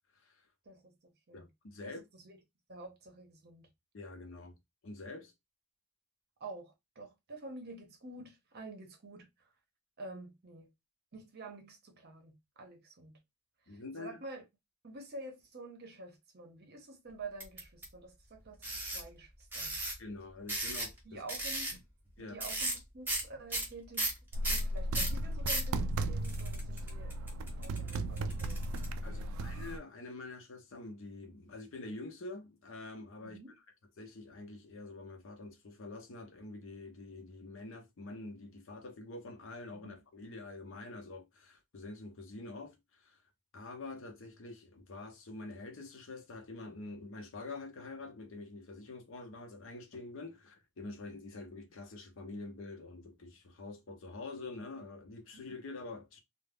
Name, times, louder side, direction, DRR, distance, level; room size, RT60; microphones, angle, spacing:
voice 1, 0.1-0.4 1.3-2.1 3.9-4.6 4.8-5.3 13.7-14.2 20.0-21.2 22.2-22.4 29.0-33.4 34.0-43.2 43.5-56.2, left 2 dB, 60° left, 0.6 m, -46 dB
voice 2, 0.6-1.5 1.8-2.4 2.7-3.7 6.4-9.5 10.0-10.7 11.1-13.2 13.6-14.4 14.8-19.8 21.0-21.8 22.2-24.2 24.5-28.7 29.0-29.5 33.2-33.5 39.7-40.0 55.3-55.4, right 2 dB, 45° right, 0.7 m, -49 dB
sound 1, 17.4-17.8 18.6-19.0 19.5-19.9 20.5-21.0 21.3-21.7 22.4-22.8 23.1-23.2 23.5-25.7 26.2-28.8, right 2 dB, 10° right, 0.6 m, -35 dB
sound 2, 24.3-29.8, right 1 dB, 65° right, 0.3 m, -35 dB
2.3 x 2.0 x 3.4 m
head